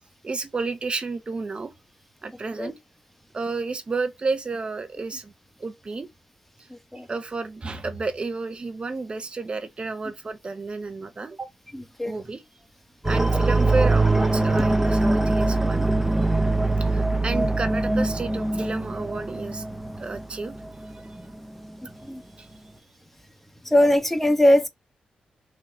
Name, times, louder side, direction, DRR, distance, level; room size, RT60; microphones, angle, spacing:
voice 1, 0.2-1.7 2.2-2.8 3.3-5.3 5.6-6.1 7.1-11.5 12.0-12.4 13.0-15.9 16.8-19.6 20.0-21.2 22.4-22.5, right 3 dB, 40° right, 0.8 m, -31 dB
voice 2, 11.7-12.1 22.0-22.2 23.6-24.7, left 1 dB, 10° left, 1.1 m, -20 dB
sound 1, 13.0-21.4 21.6-21.7, right 2 dB, 10° right, 0.8 m, -23 dB
3.8 x 2.9 x 4.5 m
cardioid pair, 65°, 3 cm